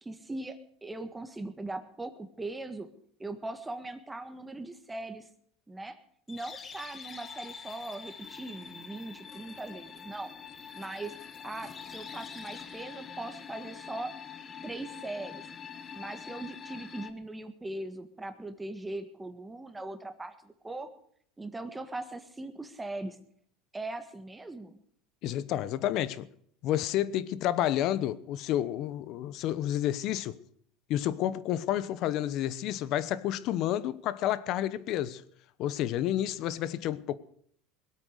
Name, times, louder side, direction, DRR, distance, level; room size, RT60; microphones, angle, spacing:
voice 1, 0.0-2.9 3.2-5.3 5.7-6.0 6.3-10.3 10.7-11.2 11.4-14.2 14.6-15.5 15.9-20.9 21.4-23.2 23.7-24.8, right 2 dB, 10° right, 1.6 m, -40 dB
sound 1, 6.3-17.1, left 7 dB, 30° left, 1.3 m, -45 dB
voice 2, 25.2-26.3 26.6-30.4 30.9-35.2 35.6-37.1, left 12 dB, 55° left, 1.0 m, -30 dB
21.0 x 8.8 x 6.5 m
supercardioid pair, 115°, 0 cm